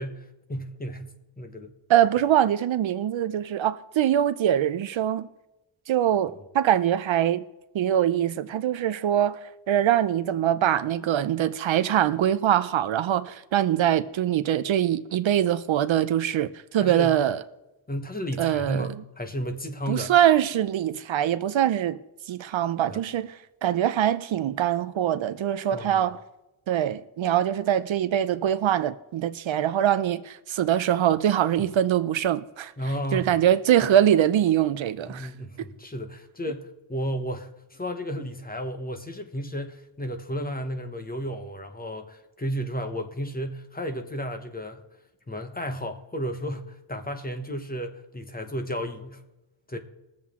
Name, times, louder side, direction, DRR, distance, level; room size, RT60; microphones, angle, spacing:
voice 1, 0.0-1.8 16.8-17.2 17.9-20.1 22.9-23.0 25.7-26.0 31.6-31.7 32.8-33.4 33.8-33.9 35.0-44.8 45.3-49.2 49.7-49.8, equal, 20° left, 1.0 m, -33 dB
voice 2, 1.9-5.3 5.9-7.5 7.7-17.4 18.4-19.0 19.9-22.0 22.3-26.2 26.7-32.7 33.1-35.3 35.6-35.7, right 11 dB, 65° right, 0.6 m, -23 dB
20.5 x 7.4 x 3.6 m
wide cardioid pair, 135°, 50 cm